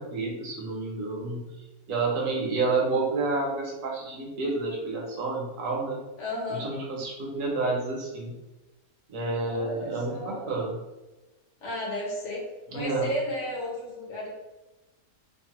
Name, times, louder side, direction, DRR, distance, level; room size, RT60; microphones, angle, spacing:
voice 1, 0.0-1.4 1.9-6.0 6.5-8.4 9.1-10.8 12.7-13.1, right 3 dB, 70° right, -2 dB, 1.0 m, -29 dB
voice 2, 6.2-6.7 9.4-10.6 11.6-12.5 12.7-14.3, left 1 dB, 60° left, -4 dB, 1.1 m, -33 dB
2.9 x 2.0 x 2.9 m, 1.1 s
omnidirectional pair, 1.5 m